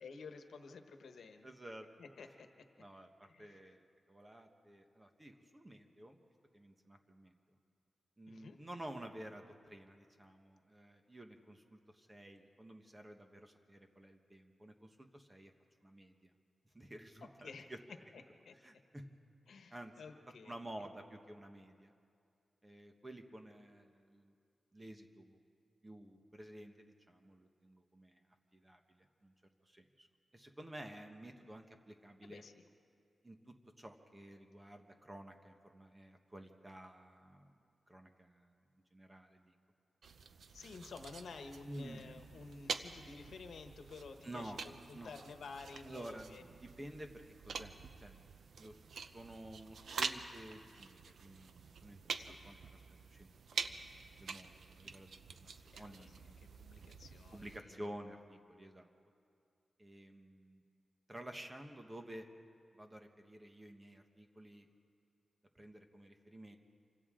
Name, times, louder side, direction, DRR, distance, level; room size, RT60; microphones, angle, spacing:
voice 1, 0.0-1.5 2.0-2.5 3.2-3.7 8.3-8.6 17.2-17.7 18.1-18.5 19.5-20.5 32.2-32.6 40.5-46.4 52.2-52.5 55.7-57.8, left 4 dB, 75° left, 6 dB, 1.2 m, -52 dB
voice 2, 1.4-1.9 2.8-6.2 6.5-7.3 8.2-15.5 15.8-16.3 16.7-17.8 18.6-19.1 19.7-19.9 20.5-21.9 22.6-24.4 24.7-25.4 25.8-28.2 28.5-29.3 29.6-30.1 30.3-32.4 33.2-37.5 37.9-38.5 38.9-39.5 41.7-42.0 44.2-44.6 44.9-45.1 45.8-48.2 48.6-48.8 49.1-52.8 53.1-53.3 53.7-53.8 54.2-55.5 55.8-56.5 57.3-58.9 59.8-60.6 61.1-62.3 62.7-64.7 65.5-66.6, right 1 dB, 15° right, 4 dB, 1.3 m, -52 dB
sound 1, 40.0-57.6, right 5 dB, 75° right, 0.7 m, -47 dB
27.5 x 25.0 x 3.8 m, 2.4 s
wide cardioid pair, 140°, 0 cm